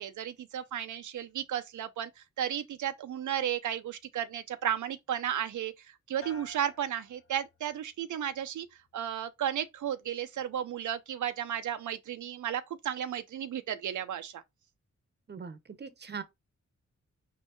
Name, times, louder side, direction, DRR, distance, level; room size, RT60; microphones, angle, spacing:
voice 1, 0.0-8.7 8.9-14.4, right 10 dB, 80° right, 0.4 m, -34 dB
sound 1, 6.2-7.9 8.3-8.9, left 1 dB, 45° left, 0.8 m, -53 dB
voice 2, 15.3-16.2, right 6 dB, 35° right, 0.7 m, -41 dB
5.3 x 3.2 x 2.9 m
wide cardioid pair, 85°, 30 cm